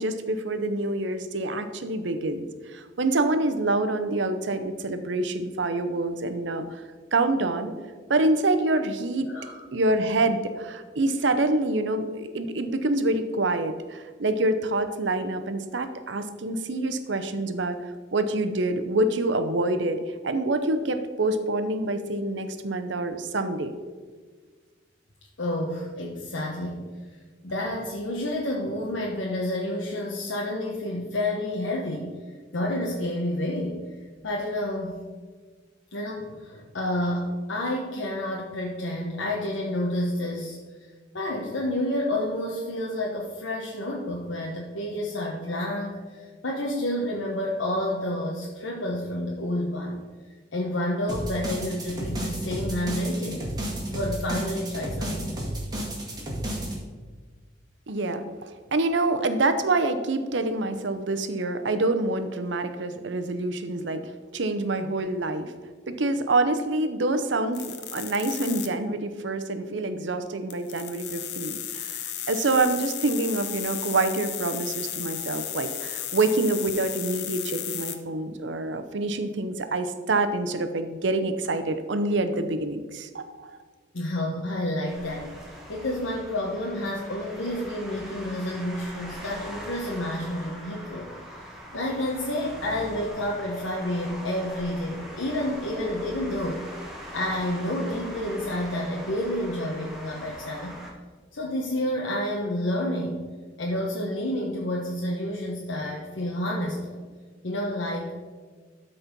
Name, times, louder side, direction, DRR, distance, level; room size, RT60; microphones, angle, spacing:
voice 1, 0.0-6.8 7.1-7.7 8.1-9.3 9.7-23.7 57.9-64.0 64.3-65.5 65.9-83.5, right 2 dB, 70° right, 9 dB, 0.7 m, -26 dB
voice 2, 9.3-9.6 25.4-26.8 27.4-32.1 32.5-33.8 34.2-35.0 35.9-40.9 41.1-50.0 50.5-53.5 53.9-55.6 83.9-85.3 85.7-91.1 91.7-96.6 97.1-100.8 101.3-103.2 103.6-107.0 107.4-108.2, left 1 dB, 80° left, -2 dB, 1.1 m, -29 dB
sound 1, 51.1-56.8, right 1 dB, 20° right, 2.0 m, -32 dB
sound 2, 67.5-68.7 70.5-78.0, left 10 dB, 60° left, 0.8 m, -34 dB
sound 3, 84.9-100.9, equal, ahead, 1.7 m, -42 dB
12.5 x 4.3 x 5.3 m, 1.5 s
head